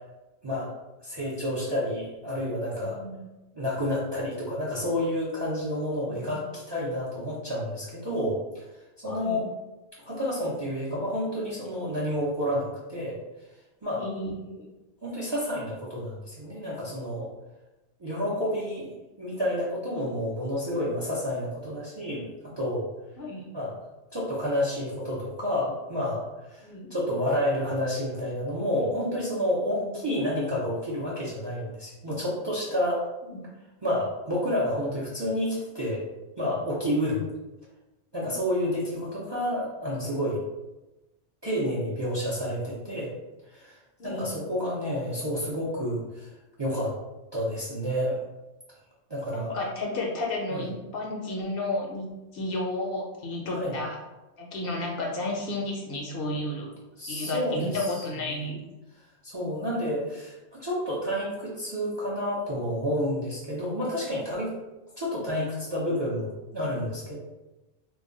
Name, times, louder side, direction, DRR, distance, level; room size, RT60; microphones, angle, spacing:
voice 1, 0.4-0.7 1.0-3.0 3.5-8.6 9.0-9.4 10.0-13.2 13.8-14.1 15.0-17.3 18.0-22.3 22.6-22.9 23.5-23.8 24.1-26.2 26.5-33.0 33.8-36.0 36.4-37.2 38.1-40.4 41.4-43.2 43.5-43.8 44.0-46.3 46.6-46.9 47.3-48.2 49.1-49.6 50.5-50.6 53.5-53.7 57.0-58.0 58.3-58.5 59.2-64.5 65.0-67.2, equal, 30° right, -6 dB, 0.5 m, -29 dB
voice 2, 2.8-3.1 6.1-6.4 9.1-9.4 13.9-14.7 23.2-23.4 26.6-26.9 29.7-29.9 33.2-33.4 44.0-44.3 49.3-54.0 54.4-56.7 57.1-58.6, left 2 dB, 65° left, -1 dB, 0.7 m, -32 dB
2.3 x 2.1 x 3.7 m, 1.0 s
omnidirectional pair, 1.2 m